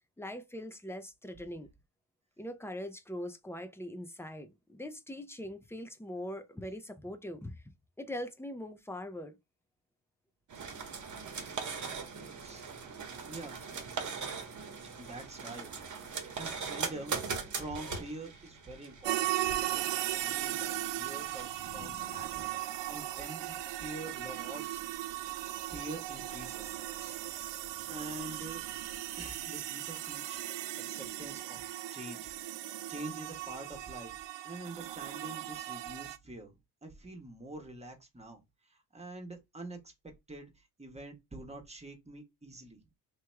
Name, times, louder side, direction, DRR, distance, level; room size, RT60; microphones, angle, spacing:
voice 1, 0.2-1.7 2.4-7.6 8.0-9.4, left 1 dB, 5° left, 0.6 m, -42 dB
photocopier office sequence of copies, 10.5-29.4, right 5 dB, 45° right, 1.2 m, -43 dB
voice 2, 13.2-13.7 15.0-15.7 16.2-19.3 19.6-22.5 22.9-25.2 25.7-27.2 27.9-28.6 29.2-30.4 30.9-31.6 31.9-32.3 32.9-34.1 34.4-39.9 40.3-42.8, right 2 dB, 15° right, 1.3 m, -46 dB
sound 1, 16.4-19.8 21.0-22.7, left 5 dB, 55° left, 0.7 m, -51 dB
sound 2, 19.0-36.2, right 14 dB, 90° right, 0.5 m, -37 dB
3.4 x 2.9 x 3.4 m
cardioid pair, 95°, 42 cm